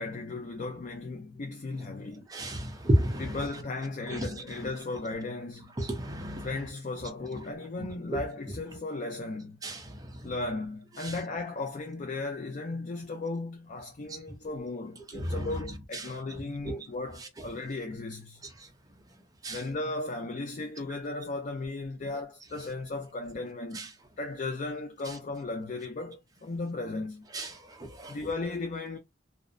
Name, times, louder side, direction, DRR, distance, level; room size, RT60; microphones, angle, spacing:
voice 1, 0.0-2.3 3.2-5.7 6.4-9.6 10.2-18.4 19.5-23.9 24.2-27.3 28.1-29.0, left 3 dB, 45° left, 0.4 m, -36 dB
voice 2, 2.3-3.4 4.1-4.3 5.8-6.5 8.1-8.2 9.6-10.3 11.0-11.1 15.1-15.5 15.9-16.1 16.7-16.9 19.4-19.6 23.7-23.9 27.3-28.2, right 1 dB, 20° right, 0.5 m, -31 dB
2.6 x 2.0 x 2.4 m
head